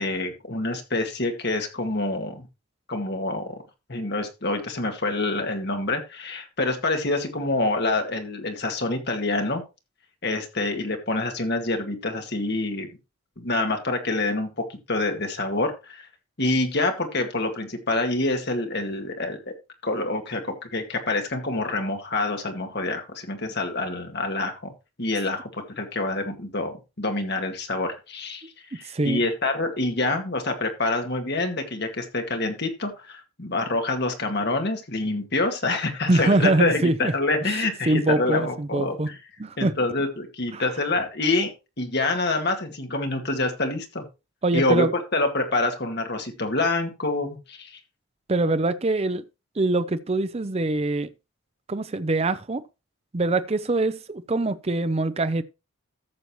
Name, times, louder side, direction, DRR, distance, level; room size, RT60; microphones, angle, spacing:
voice 1, 0.0-2.5 2.9-3.5 3.9-9.6 10.2-12.9 13.4-16.1 16.4-19.5 19.8-24.7 25.0-28.4 28.7-39.2 39.6-41.5 41.8-44.0 44.5-47.8, left 2 dB, 50° left, 2.0 m, -26 dB
voice 2, 28.8-29.2 36.1-37.1 37.4-39.1 39.4-39.7 40.5-40.6 44.4-44.9 48.3-49.2 49.6-51.1 51.7-52.6 53.1-55.4, right 2 dB, 30° right, 0.5 m, -24 dB
14.0 x 6.8 x 3.1 m
head